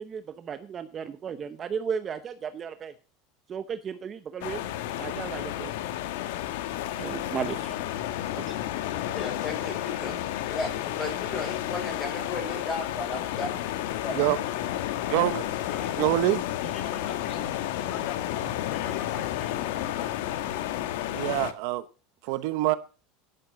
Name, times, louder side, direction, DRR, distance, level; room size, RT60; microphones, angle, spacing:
voice 1, 0.0-2.9 3.5-4.7 5.0-5.7 7.0-7.8 8.4-8.6, right 7 dB, 25° right, 0.7 m, -35 dB
sound 1, 4.4-21.5, left 13 dB, 75° left, 1.4 m, -31 dB
voice 2, 8.9-13.8 14.0-14.2, left 3 dB, 20° left, 6.0 m, -35 dB
voice 3, 13.6-14.0 15.7-15.9 16.3-17.5 17.8-20.3, left 7 dB, 40° left, 2.5 m, -41 dB
voice 4, 15.1-15.4 16.0-16.4 21.1-21.8 22.2-22.7, right 16 dB, 60° right, 0.8 m, -25 dB
12.0 x 10.5 x 6.2 m
supercardioid pair, 160°, 0 cm